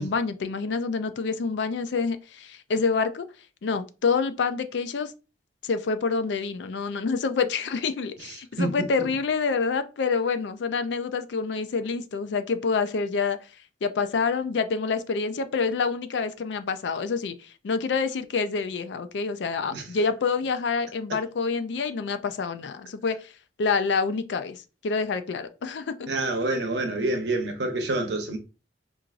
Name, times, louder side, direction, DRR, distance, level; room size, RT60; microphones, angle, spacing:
voice 1, 0.0-3.2 3.6-5.1 5.6-13.4 13.8-23.3 23.6-26.1, left 5 dB, 70° left, 0.4 m, -27 dB
voice 2, 8.6-8.9 19.7-19.8 26.1-28.4, right 2 dB, 65° right, 0.8 m, -27 dB
4.6 x 2.5 x 2.4 m
head